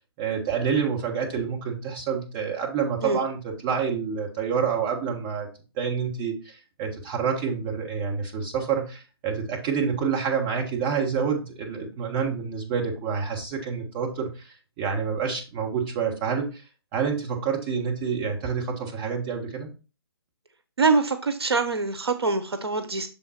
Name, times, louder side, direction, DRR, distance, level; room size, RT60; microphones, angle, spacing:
voice 1, 0.2-5.5 5.7-16.6 16.9-19.7, right 6 dB, 25° right, 1 dB, 1.4 m, -28 dB
voice 2, 20.8-23.1, right 4 dB, 75° right, 9 dB, 0.9 m, -24 dB
6.9 x 3.8 x 4.3 m, 0.32 s
figure-of-eight pair, 145°, 13 cm